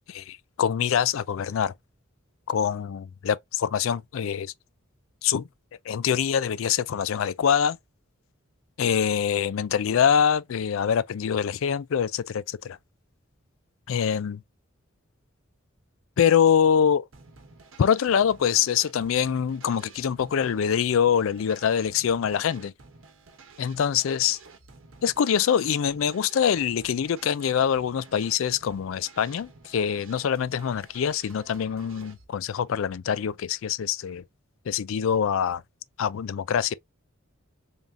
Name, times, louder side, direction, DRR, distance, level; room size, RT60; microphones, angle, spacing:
voice 1, 0.1-1.7 2.5-4.5 5.2-5.5 5.9-7.8 8.8-12.8 13.9-14.4 16.2-17.0 17.8-22.7 23.6-24.4 25.0-34.2 34.7-35.6 36.0-36.7, left 8 dB, 70° left, 0.3 m, -24 dB
sound 1, 17.1-32.3, right 4 dB, 70° right, 1.0 m, -51 dB
3.6 x 3.5 x 2.6 m
head